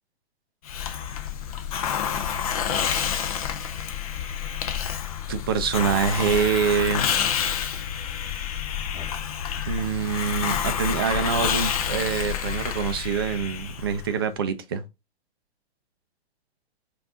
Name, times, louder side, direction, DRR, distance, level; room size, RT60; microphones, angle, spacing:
Hiss, 0.7-14.2, left 8 dB, 35° left, 0.5 m, -28 dB
voice 1, 5.3-7.1 9.7-14.8, right 7 dB, 25° right, 0.4 m, -25 dB
sound 1, 8.9-9.3 10.3-13.1, equal, 5° left, 1.7 m, -45 dB
5.2 x 2.6 x 3.5 m
figure-of-eight pair, 125°, 33 cm